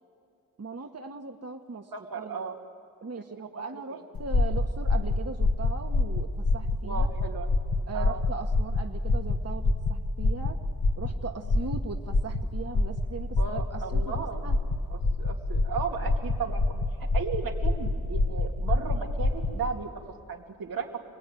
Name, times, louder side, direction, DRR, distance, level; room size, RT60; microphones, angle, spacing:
voice 1, 0.6-1.9 2.1-2.5 3.0-7.1 7.9-10.6 10.9-14.6 16.0-16.2, right 4 dB, 45° right, 4 dB, 1.6 m, -39 dB
voice 2, 1.9-2.6 3.2-3.3 3.5-3.6 3.9-4.0 6.8-7.5 7.9-8.2 13.4-14.4 14.9-16.6 17.1-21.0, right 5 dB, 90° right, 0 dB, 3.0 m, -35 dB
sound 1, 4.2-19.6, left 2 dB, 80° left, 2.1 m, -26 dB
29.5 x 19.5 x 9.4 m, 2.4 s
cardioid pair, 50°, 34 cm